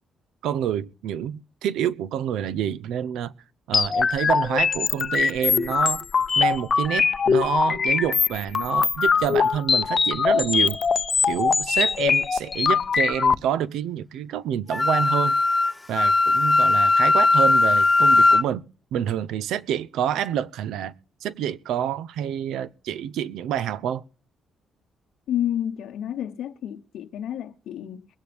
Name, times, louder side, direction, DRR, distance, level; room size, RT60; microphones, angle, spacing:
voice 1, 0.4-3.3 3.7-6.1 6.4-10.8 11.3-15.4 15.9-18.7 18.9-20.9 21.2-24.0, right 10 dB, 85° right, 0.6 m, -27 dB
sound 1, 3.7-13.3, left 5 dB, 40° left, 0.7 m, -22 dB
Wind instrument woodwind instrument, 14.7-18.4, left 3 dB, 10° left, 1.0 m, -18 dB
voice 2, 25.3-28.1, left 10 dB, 75° left, 0.8 m, -30 dB
22.5 x 9.4 x 3.4 m
cardioid pair, 90°, 0 cm